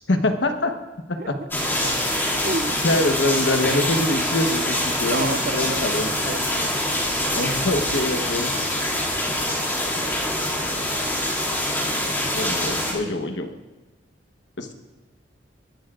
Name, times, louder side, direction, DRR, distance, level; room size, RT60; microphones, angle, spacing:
voice 1, 0.1-0.7 1.1-1.4 1.8-1.9 2.8-6.1 7.3-8.5 12.3-13.5 14.6-14.7, left 2 dB, 75° left, 6 dB, 1.2 m, -24 dB
voice 2, 1.2-1.5 2.4-2.9 5.1-5.8 6.1-6.8 12.2-12.7, right 3 dB, 50° right, 12 dB, 0.5 m, -31 dB
sound 1, 1.5-12.9, left 1 dB, 10° left, 2.4 m, -25 dB
22.0 x 11.5 x 2.5 m, 1.1 s
head